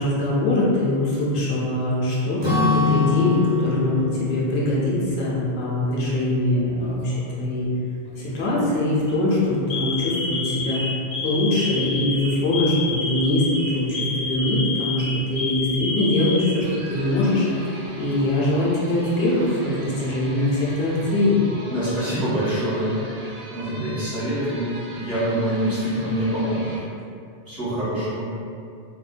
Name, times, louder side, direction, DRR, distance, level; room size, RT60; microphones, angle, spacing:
voice 1, 0.0-7.7 8.3-10.8 11.2-15.0 15.3-17.5 18.0-21.4, left 1 dB, 70° left, -6 dB, 0.9 m, -22 dB
Acoustic guitar / Strum, 2.4-6.4, left 4 dB, 35° right, 0.5 m, -25 dB
Alarm, 6.8-7.3 8.2-8.5 8.9-9.1 9.7-17.2 17.5-17.7 18.6-19.3, left 3 dB, 45° left, 0.6 m, -30 dB
sound 1, 16.6-26.8, right 1 dB, 85° right, 1.1 m, -41 dB
voice 2, 21.7-22.9 23.5-24.7 24.9-26.7 27.5-28.2, right 1 dB, 70° right, -12 dB, 1.6 m, -25 dB
3.5 x 2.1 x 2.5 m, 2.5 s
omnidirectional pair, 1.1 m